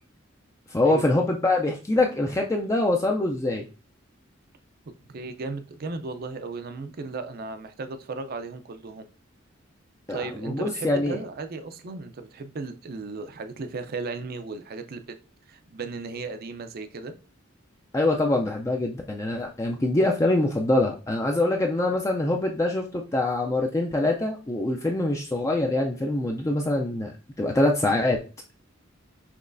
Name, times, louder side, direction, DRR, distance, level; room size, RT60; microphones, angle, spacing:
voice 1, 0.7-3.6 10.1-11.2 17.9-28.2, left 2 dB, 15° left, 1 dB, 0.4 m, -24 dB
voice 2, 5.1-9.0 10.1-15.2 15.5-17.1, right 3 dB, 50° right, 9 dB, 0.5 m, -35 dB
6.0 x 3.1 x 2.5 m, 0.35 s
head